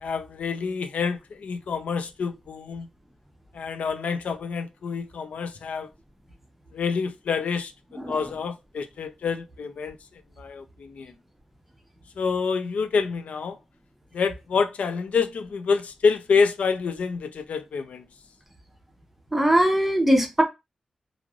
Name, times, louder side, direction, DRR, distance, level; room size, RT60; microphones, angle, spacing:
voice 1, 0.0-2.9 3.5-5.9 6.7-7.7 8.1-10.0 10.4-11.1 12.2-13.6 14.1-18.1, left 5 dB, 85° left, 0.4 m, -27 dB
voice 2, 19.3-20.4, equal, 5° right, 0.6 m, -20 dB
3.1 x 2.4 x 2.3 m
wide cardioid pair, 140°, 2 cm